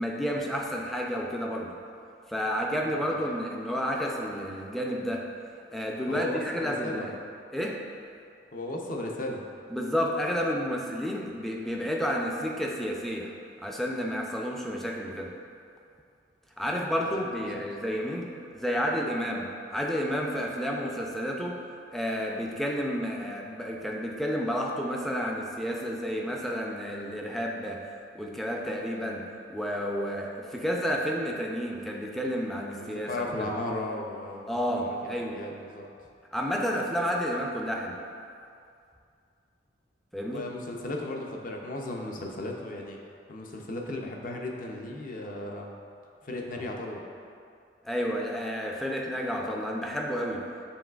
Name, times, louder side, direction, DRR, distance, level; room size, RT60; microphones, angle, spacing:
voice 1, 0.0-1.8 2.3-5.3 5.7-7.2 7.5-7.9 9.7-13.4 13.6-15.4 16.6-21.6 21.9-33.5 34.5-35.4 36.3-38.0 40.1-40.5 47.8-50.5, equal, ahead, -1 dB, 0.3 m, -31 dB
voice 2, 2.9-3.3 6.1-7.1 8.5-9.4 17.5-17.6 32.8-35.8 40.2-43.0 43.3-45.7 46.2-47.0, left 1 dB, 50° left, 0 dB, 0.5 m, -36 dB
7.0 x 3.1 x 2.3 m, 2.4 s
head